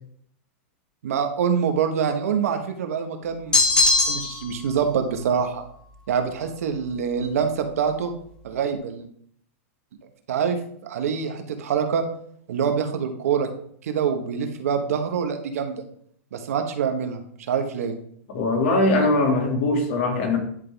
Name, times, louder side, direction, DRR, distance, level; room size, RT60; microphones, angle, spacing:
voice 1, 1.0-3.6 4.1-5.6 6.1-8.1 8.4-9.1 10.3-12.0 12.5-13.5 13.8-15.8 16.3-17.2 17.5-18.0, right 7 dB, 85° right, 6 dB, 1.0 m, -25 dB
sound 1, 3.5-4.5, left 3 dB, 10° left, 0.7 m, -19 dB
voice 2, 18.3-20.4, left 2 dB, 60° left, 2 dB, 2.0 m, -21 dB
10.5 x 3.7 x 3.4 m, 0.65 s
supercardioid pair, 155°, 8 cm